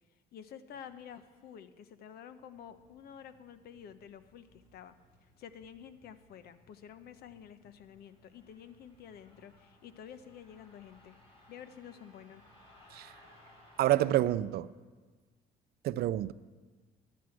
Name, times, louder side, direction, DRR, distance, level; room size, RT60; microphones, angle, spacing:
voice 1, 0.3-4.9 5.2-11.2 11.5-12.4, left 8 dB, 70° left, 0.9 m, -50 dB
sound 1, 0.7-1.5 2.3-14.0, left 1 dB, 35° left, 4.4 m, -63 dB
voice 2, 13.8-14.7 15.8-16.3, right 14 dB, 65° right, 0.5 m, -28 dB
11.5 x 9.3 x 7.7 m
cardioid pair, 110°, 17 cm